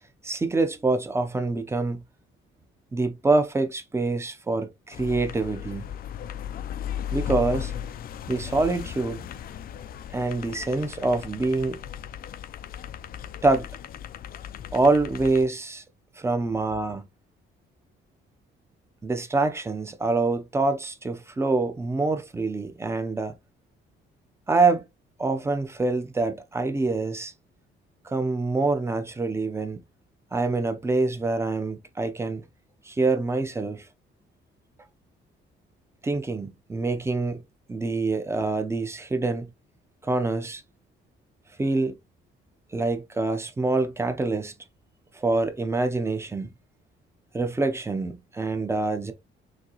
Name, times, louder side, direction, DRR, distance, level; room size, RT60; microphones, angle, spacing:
voice 1, 0.2-2.0 2.9-5.9 7.1-7.7 8.3-9.2 10.1-11.8 13.4-13.7 14.7-15.8 16.2-17.1 19.0-23.4 24.5-24.8 25.2-27.3 28.0-29.8 30.3-32.4 32.8-33.9 36.0-37.4 37.7-39.5 40.0-40.6 41.6-42.0 42.7-44.5 45.1-46.5 47.3-49.1, right 3 dB, 15° right, 0.6 m, -25 dB
sound 1, 4.9-15.5, left 9 dB, 50° left, 0.4 m, -36 dB
6.3 x 2.8 x 2.9 m
cardioid pair, 165°, 20 cm